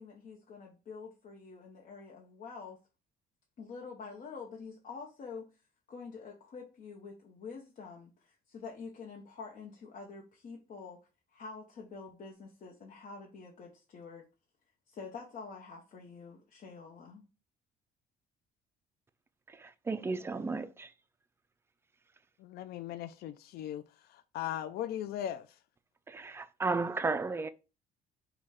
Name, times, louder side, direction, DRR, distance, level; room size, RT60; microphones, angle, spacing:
voice 1, 0.0-2.8 3.6-5.5 5.9-11.0 11.3-14.3 14.9-17.2, left 5 dB, 50° left, 0.8 m, -47 dB
voice 2, 19.5-20.9 26.1-27.5, right 3 dB, 15° right, 0.3 m, -34 dB
voice 3, 22.4-23.8 24.3-25.4, left 11 dB, 65° left, 0.4 m, -38 dB
5.2 x 2.3 x 3.5 m
cardioid pair, 110°, 17 cm